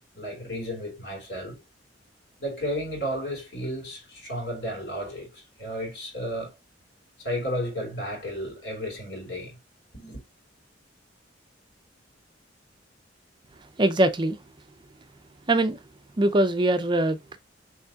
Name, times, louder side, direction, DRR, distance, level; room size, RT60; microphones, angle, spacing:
voice 1, 0.1-1.6 2.4-6.5 7.2-9.6 9.9-10.2, equal, 60° left, 2.7 m, -33 dB
voice 2, 13.8-14.4 15.5-15.8 16.2-17.4, right 1 dB, 25° right, 0.5 m, -22 dB
5.9 x 3.2 x 2.8 m
head